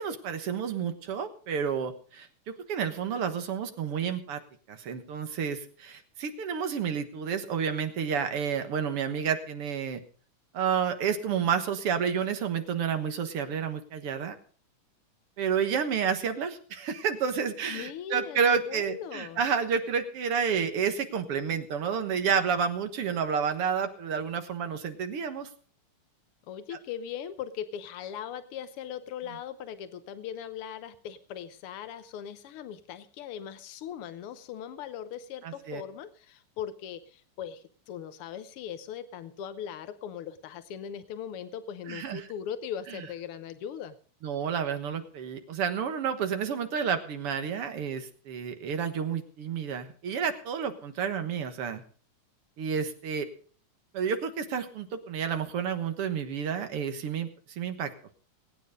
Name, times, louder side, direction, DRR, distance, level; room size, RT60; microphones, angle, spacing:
voice 1, 0.0-4.4 4.7-10.0 10.5-14.4 15.4-25.5 35.4-35.8 41.9-42.3 44.2-51.8 52.6-53.3 53.9-57.9, right 7 dB, 55° right, 8 dB, 1.9 m, -30 dB
voice 2, 17.7-19.4 26.5-43.9, left 9 dB, 80° left, 12 dB, 1.2 m, -39 dB
20.0 x 9.3 x 5.1 m, 0.42 s
omnidirectional pair, 3.6 m